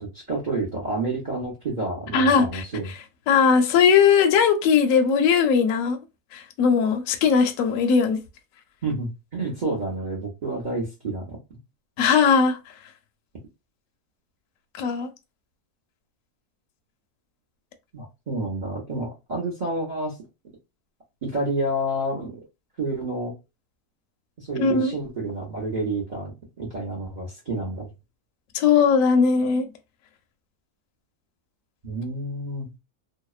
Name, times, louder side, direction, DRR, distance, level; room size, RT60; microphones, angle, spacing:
voice 1, 0.0-2.9 8.8-11.4 17.9-20.2 21.2-22.4 22.8-23.3 24.4-26.3 26.6-27.9 31.8-32.7, right 2 dB, 45° right, 0.6 m, -29 dB
voice 2, 2.1-2.6 3.3-6.0 6.3-8.2 12.0-12.6 14.8-15.1 24.6-24.9 28.5-29.7, left 6 dB, 70° left, 0.9 m, -19 dB
2.8 x 2.0 x 2.3 m
omnidirectional pair, 1.7 m